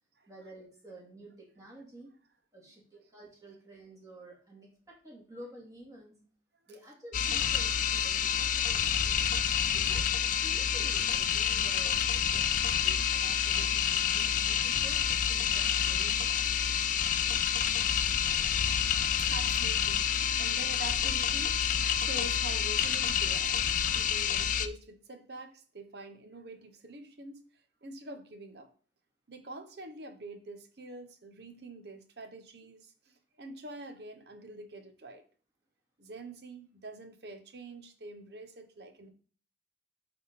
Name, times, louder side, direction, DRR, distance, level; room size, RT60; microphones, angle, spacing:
voice 1, 0.3-2.1 2.5-6.2 6.7-9.3 9.7-10.1 10.4-16.9, right 1 dB, 20° right, -3 dB, 2.5 m, -51 dB
sound 1, 7.1-24.7, left 8 dB, 45° left, 0.4 m, -28 dB
voice 2, 19.2-21.5 22.0-23.6 23.9-27.4 27.8-28.7 29.3-35.2 36.0-39.1, right 2 dB, 60° right, 7 dB, 1.0 m, -45 dB
9.1 x 3.8 x 4.2 m, 0.41 s
head